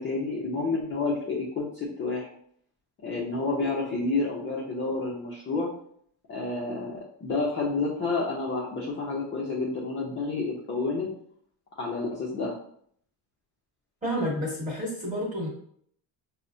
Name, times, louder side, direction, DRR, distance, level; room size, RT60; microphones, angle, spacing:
voice 1, 0.0-2.3 3.0-5.7 6.3-11.1 11.8-12.6, left 3 dB, 30° left, -4 dB, 0.4 m, -29 dB
voice 2, 14.0-15.5, equal, 15° right, -3 dB, 1.2 m, -30 dB
5.4 x 2.1 x 2.5 m, 0.64 s
cardioid pair, 170°, 45 cm